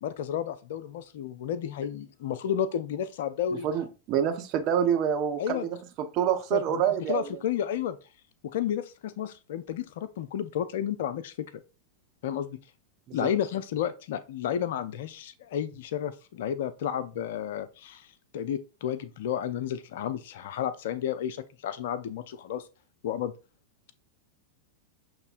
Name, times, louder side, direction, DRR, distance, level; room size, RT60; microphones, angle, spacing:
voice 1, 0.0-3.7 5.4-5.7 6.5-8.0 8.4-11.5 12.2-12.6 13.1-18.1 18.3-22.7 23.0-23.3, left 9 dB, 55° left, 0.4 m, -32 dB
voice 2, 3.6-7.4 13.1-13.3, right 8 dB, 40° right, 0.8 m, -27 dB
6.7 x 3.0 x 2.5 m
figure-of-eight pair, 90°, 0 cm